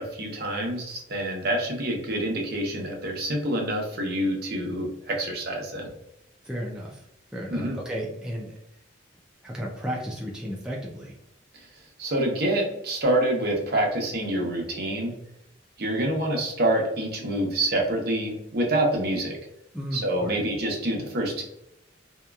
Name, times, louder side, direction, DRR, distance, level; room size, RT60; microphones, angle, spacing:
voice 1, 0.0-5.9 7.5-7.8 12.0-15.1 15.8-19.4 19.9-21.4, right 1 dB, 55° right, 0 dB, 0.7 m, -26 dB
voice 2, 6.4-7.0 7.3-8.6 9.4-11.1 19.7-20.4, equal, 5° right, -3 dB, 0.3 m, -34 dB
2.8 x 2.2 x 2.3 m, 0.79 s
head